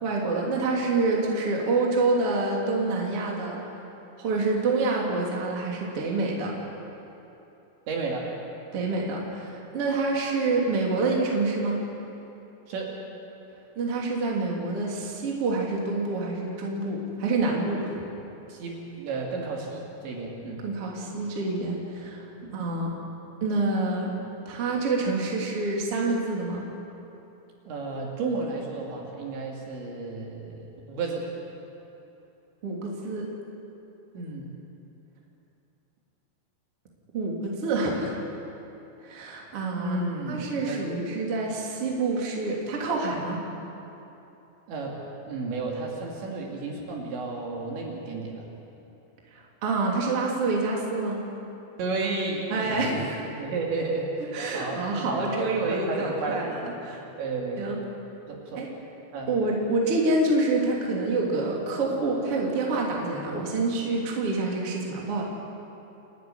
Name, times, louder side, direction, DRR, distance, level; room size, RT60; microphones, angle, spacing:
voice 1, 0.0-3.6 4.2-6.6 8.7-11.8 13.7-18.0 20.6-22.3 22.5-22.9 23.4-24.1 24.4-26.6 32.6-33.3 37.1-38.1 39.0-40.0 40.3-43.4 49.3-51.2 52.5-53.2 54.3-57.0 57.6-57.8 58.6-58.7 59.3-65.2, right 3 dB, 35° right, -2 dB, 3.1 m, -27 dB
voice 2, 7.9-8.3 12.7-13.0 18.5-20.6 22.4-22.5 27.7-31.3 34.1-34.5 39.8-41.0 44.7-45.0 45.3-48.4 51.8-53.0 53.4-56.4 56.7-57.7 58.3-58.6 59.1-59.3, right 3 dB, 65° right, -1 dB, 4.5 m, -32 dB
29.0 x 12.0 x 9.7 m, 2.9 s
omnidirectional pair, 5.9 m